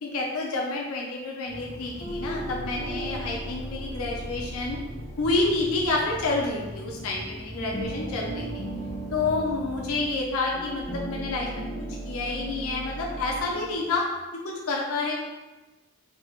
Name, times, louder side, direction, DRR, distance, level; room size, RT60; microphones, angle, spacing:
voice 1, 0.0-4.8 5.2-8.6 9.1-11.7 12.0-14.1 14.4-15.2, left 3 dB, 80° left, -1 dB, 0.5 m, -29 dB
sound 1, 1.4-10.0, equal, 50° right, 0.7 m, -41 dB
sound 2, 2.0-7.2 7.5-13.8, right 1 dB, 30° left, 0.6 m, -37 dB
3.3 x 2.3 x 3.0 m, 1.2 s
head